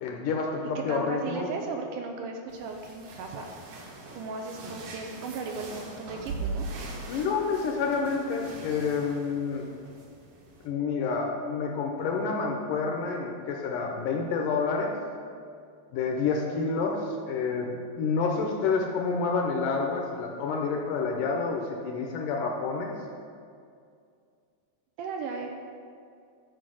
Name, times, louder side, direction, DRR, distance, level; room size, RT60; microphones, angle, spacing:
voice 1, 0.0-1.5 7.1-9.7 10.6-14.9 15.9-22.9, left 4 dB, 75° left, 1 dB, 2.0 m, -29 dB
voice 2, 0.6-3.5 4.2-6.7 25.0-25.5, right 4 dB, 85° right, 3 dB, 1.8 m, -36 dB
sound 1, 2.5-10.7, right 3 dB, 65° right, 2.8 m, -41 dB
12.0 x 4.9 x 6.3 m, 2.3 s
omnidirectional pair, 4.5 m